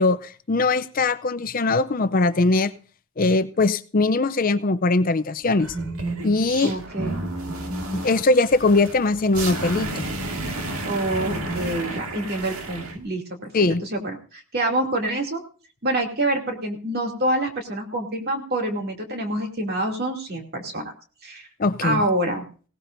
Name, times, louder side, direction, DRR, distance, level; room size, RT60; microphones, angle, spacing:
voice 1, 0.0-2.7 3.2-5.7 6.2-6.7 7.9-10.0 13.5-13.8 21.6-22.0, left 3 dB, 40° left, 12 dB, 0.5 m, -21 dB
sound 1, 5.6-13.0, right 2 dB, 75° right, 2.1 m, -31 dB
voice 2, 6.6-7.2 10.8-13.5 13.8-15.4 15.8-20.9 21.2-21.5 21.8-22.4, right 1 dB, 45° right, 2 dB, 2.7 m, -26 dB
19.5 x 17.5 x 2.6 m, 0.40 s
head